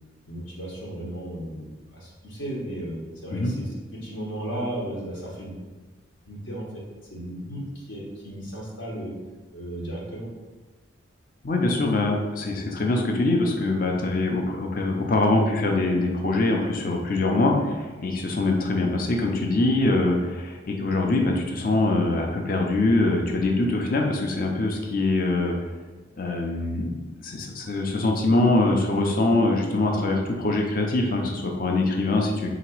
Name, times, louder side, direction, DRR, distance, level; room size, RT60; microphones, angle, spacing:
voice 1, 0.2-5.6 6.3-6.8 7.1-9.2 9.5-10.3, right 1 dB, 65° left, -4 dB, 0.9 m, -35 dB
voice 2, 11.4-25.5 26.2-26.9 27.2-32.5, left 2 dB, 45° left, 1 dB, 0.5 m, -23 dB
3.9 x 2.9 x 4.5 m, 1.2 s
head